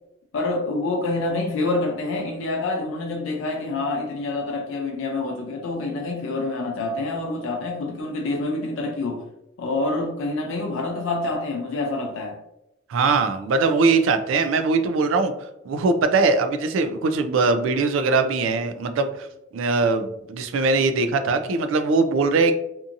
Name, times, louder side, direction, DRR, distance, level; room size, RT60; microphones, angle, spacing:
voice 1, 0.3-9.2 9.6-12.4, left 2 dB, 70° left, 2 dB, 0.4 m, -27 dB
voice 2, 12.9-15.3 15.7-19.3 19.5-22.5, right 3 dB, 70° right, 9 dB, 0.3 m, -21 dB
2.6 x 2.5 x 2.5 m, 0.84 s
head